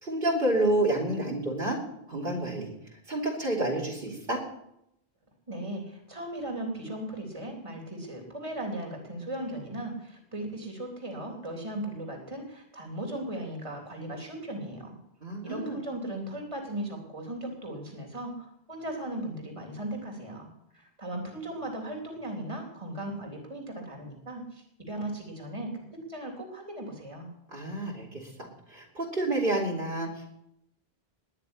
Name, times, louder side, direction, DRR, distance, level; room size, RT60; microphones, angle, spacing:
voice 1, 0.0-1.8 2.1-2.7 3.1-4.4 15.2-15.8 27.5-30.3, right 1 dB, 55° right, -3 dB, 3.4 m, -29 dB
voice 2, 5.5-15.0 15.4-20.5 20.7-25.8 26.1-27.3, right 1 dB, 30° right, 2 dB, 3.4 m, -37 dB
20.0 x 6.7 x 9.9 m, 0.80 s
omnidirectional pair, 1.0 m